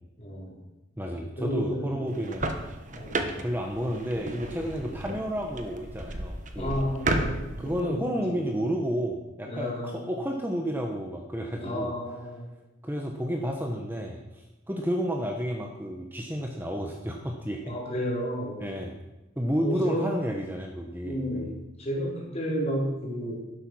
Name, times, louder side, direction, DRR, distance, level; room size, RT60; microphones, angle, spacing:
voice 1, 0.2-0.6 1.4-2.1 2.9-3.3 4.8-5.0 6.6-8.4 9.5-10.0 11.6-12.5 17.6-18.7 19.6-20.1 21.0-21.5 21.8-23.4, equal, 30° left, -3 dB, 3.9 m, -32 dB
voice 2, 1.0-2.5 3.4-6.8 7.6-11.9 12.8-17.7 18.6-18.9 19.4-21.5, equal, 10° right, 2 dB, 1.0 m, -31 dB
sound 1, 2.1-7.8, right 2 dB, 40° right, 1.3 m, -33 dB
12.0 x 11.0 x 6.2 m, 1.0 s
head